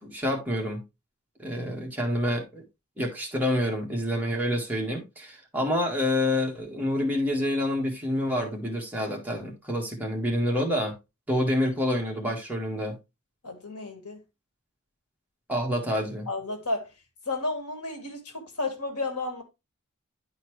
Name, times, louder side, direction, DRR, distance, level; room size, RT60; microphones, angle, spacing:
voice 1, 0.0-0.8 1.4-2.6 3.0-11.0 11.3-13.0 15.5-16.3, left 1 dB, 5° right, 1.7 m, -27 dB
voice 2, 13.4-14.2 16.3-16.9 17.3-19.4, left 2 dB, 85° left, 1.8 m, -32 dB
10.5 x 4.3 x 3.2 m
head